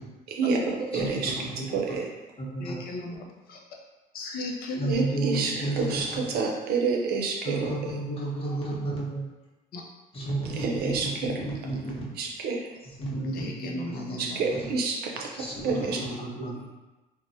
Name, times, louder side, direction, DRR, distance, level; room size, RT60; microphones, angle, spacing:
voice 1, 0.4-1.3 1.7-2.0 4.9-7.7 10.5-11.4 12.2-12.7 14.2-16.0, right 4 dB, 65° right, 0 dB, 0.5 m, -28 dB
voice 2, 0.9-1.8 2.4-2.8 4.8-6.2 7.4-9.3 10.1-12.1 12.8-14.3 14.6-14.7 15.4-16.5, right 2 dB, 35° left, -6 dB, 1.0 m, -32 dB
voice 3, 2.6-3.6 4.1-5.2 9.7-9.8 13.2-14.4 15.8-15.9, left 2 dB, 60° left, 0 dB, 0.5 m, -36 dB
3.0 x 2.0 x 2.6 m, 1.1 s
cardioid pair, 110°, 17 cm